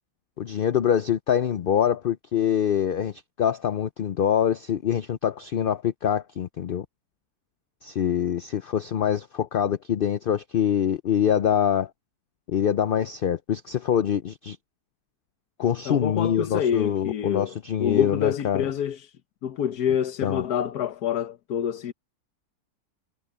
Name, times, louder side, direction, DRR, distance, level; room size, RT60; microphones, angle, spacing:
voice 1, 0.4-6.8 7.8-11.9 12.5-14.6 15.6-18.6 20.2-20.5, left 9 dB, 60° left, 0.5 m, -24 dB
voice 2, 15.8-19.1 19.4-21.9, left 9 dB, 80° left, 1.5 m, -27 dB
omnidirectional pair, 1.7 m